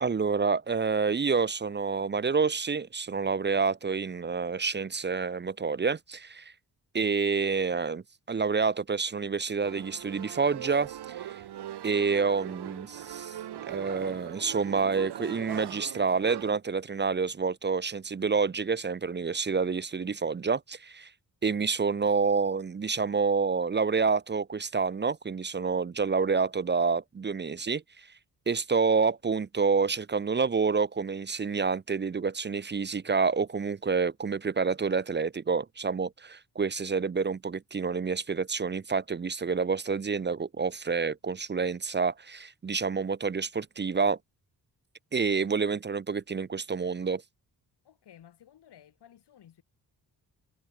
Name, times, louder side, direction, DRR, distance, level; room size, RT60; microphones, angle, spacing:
voice 1, 0.0-6.5 6.9-11.4 11.8-13.4 13.7-21.1 21.4-28.1 28.5-44.2 45.1-47.2, right 5 dB, 25° right, 0.7 m, -28 dB
sound 1, 9.6-16.6, right 11 dB, 80° right, 1.4 m, -40 dB
voice 2, 47.8-49.6, left 10 dB, 90° left, 4.6 m, -55 dB
wide cardioid pair, 150°, 39 cm